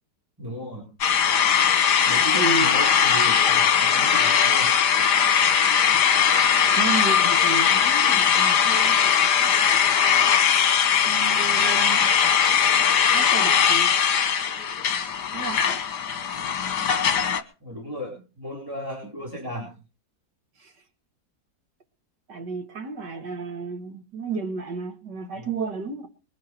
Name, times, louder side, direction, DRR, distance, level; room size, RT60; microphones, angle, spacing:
voice 1, 0.4-0.8 2.1-4.7 17.6-19.7 25.4-25.5, equal, 10° right, -2 dB, 4.1 m, -35 dB
sound 1, 1.0-17.4, left 8 dB, 80° left, 1.8 m, -20 dB
voice 2, 2.3-2.7 6.8-9.0 11.1-12.1 13.1-13.9 15.3-15.6 20.6-20.7 22.3-26.1, right 4 dB, 90° right, 6 dB, 2.6 m, -32 dB
22.0 x 9.5 x 4.6 m, 0.35 s
omnidirectional pair, 1.8 m